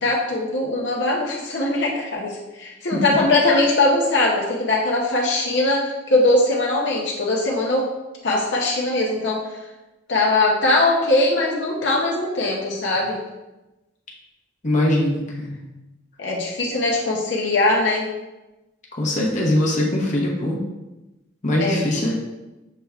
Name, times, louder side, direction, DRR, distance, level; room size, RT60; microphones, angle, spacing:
voice 1, 0.0-7.9 8.2-9.4 10.1-13.2 16.2-18.1 21.6-21.8, left 2 dB, 70° left, -2 dB, 0.7 m, -21 dB
voice 2, 14.6-15.6 18.9-20.6 21.4-22.1, left 1 dB, 40° left, -2 dB, 0.8 m, -22 dB
6.6 x 3.4 x 2.3 m, 1.0 s
head